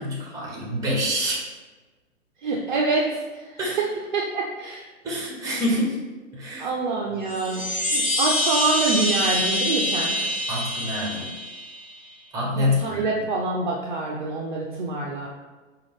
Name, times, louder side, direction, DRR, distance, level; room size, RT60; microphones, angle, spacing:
voice 1, 0.0-1.4 3.6-3.8 5.0-6.0 6.3-6.7 7.1-7.2 10.5-11.3 12.3-13.1, left 1 dB, 10° right, -3 dB, 0.8 m, -26 dB
voice 2, 2.4-3.6 4.1-4.8 6.6-10.2 12.6-15.3, right 3 dB, 40° right, -2 dB, 0.5 m, -26 dB
Chime, 7.2-11.9, left 1 dB, 30° left, 1.4 m, -25 dB
5.0 x 2.4 x 3.4 m, 1.3 s
figure-of-eight pair, 125°, 39 cm